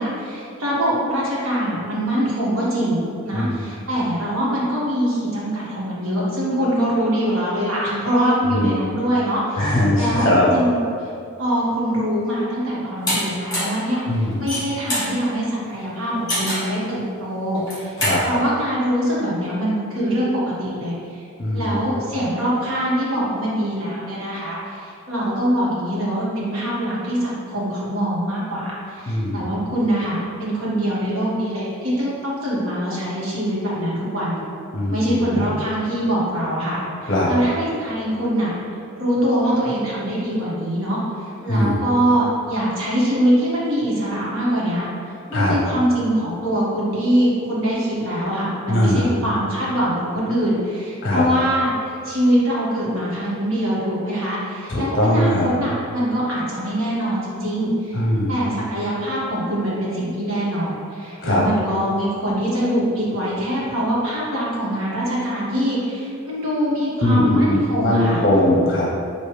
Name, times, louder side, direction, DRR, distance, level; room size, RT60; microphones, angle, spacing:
voice 1, 0.0-11.1 11.4-14.0 14.4-17.9 18.3-21.2 21.5-34.4 34.9-38.5 39.0-44.8 45.3-58.0 58.3-68.2, equal, 75° right, -7 dB, 1.4 m, -23 dB
voice 2, 9.6-10.5 14.1-14.4 18.0-18.2 21.4-21.8 29.1-29.5 34.7-35.4 37.1-37.3 41.5-41.8 45.3-45.5 48.7-49.1 51.0-51.2 54.7-55.5 57.9-58.4 61.2-61.4 67.0-68.9, left 1 dB, 40° left, -5 dB, 0.7 m, -20 dB
sound 1, 13.1-13.2 13.5-13.8 14.3-15.1 16.3-16.7 17.5-18.2, left 1 dB, 20° left, 1.3 m, -23 dB
6.5 x 2.6 x 3.1 m, 2.4 s
head